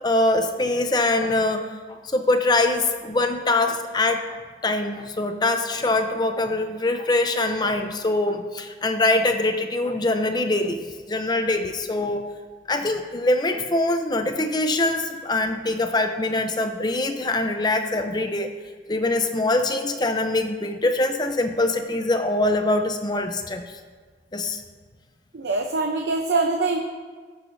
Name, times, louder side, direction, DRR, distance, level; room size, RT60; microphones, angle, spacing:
voice 1, 0.0-12.2 12.7-18.5 18.9-23.6 24.3-24.6, left 2 dB, 25° left, 6 dB, 0.6 m, -23 dB
voice 2, 25.3-26.9, right 3 dB, 75° right, 3 dB, 0.7 m, -23 dB
18.0 x 6.7 x 2.7 m, 1.5 s
head